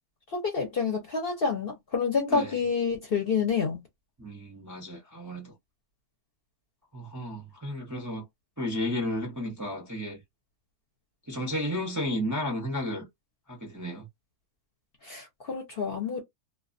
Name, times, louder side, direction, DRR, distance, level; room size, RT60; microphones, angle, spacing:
voice 1, 0.3-3.8 15.0-16.2, left 5 dB, 50° left, 0.7 m, -28 dB
voice 2, 4.2-5.5 6.9-8.2 8.6-10.2 11.3-13.1 13.5-14.1, left 1 dB, 20° right, 0.5 m, -33 dB
2.3 x 2.2 x 2.5 m
omnidirectional pair, 1.6 m